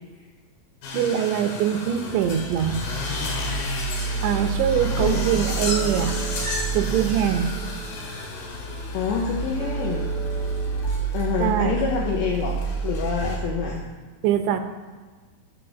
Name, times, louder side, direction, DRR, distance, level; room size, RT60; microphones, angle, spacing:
sound 1, 0.8-13.4, left 3 dB, 60° left, 3.4 m, -34 dB
voice 1, 0.9-2.8 4.2-6.2 6.7-7.6 11.4-11.7 14.2-14.6, right 9 dB, 75° right, 6 dB, 3.0 m, -23 dB
sound 2, 2.0-13.8, right 4 dB, 25° left, 2.9 m, -29 dB
sound 3, 4.0-10.8, right 4 dB, 35° right, 3.2 m, -40 dB
voice 2, 8.9-10.1 11.1-13.8, left 6 dB, 75° left, -1 dB, 2.9 m, -27 dB
15.0 x 5.3 x 6.6 m, 1.4 s
omnidirectional pair, 5.8 m